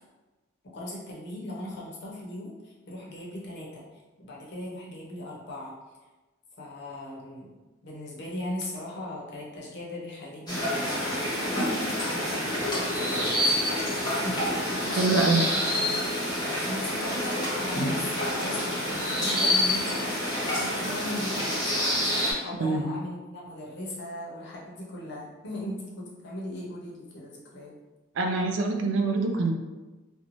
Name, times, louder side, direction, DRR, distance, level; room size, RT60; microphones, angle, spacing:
voice 1, 0.7-3.8 4.2-5.8 6.6-7.5 7.8-11.3 12.0-14.4 14.8-15.5 16.7-21.7 22.4-27.8, left 1 dB, 55° left, -4 dB, 0.6 m, -38 dB
sound 1, 10.5-22.3, left 1 dB, 20° left, 0.7 m, -27 dB
voice 2, 15.0-15.4 22.6-22.8 28.2-29.5, right 3 dB, 65° right, 4 dB, 0.3 m, -24 dB
2.5 x 2.1 x 2.9 m, 1.2 s
head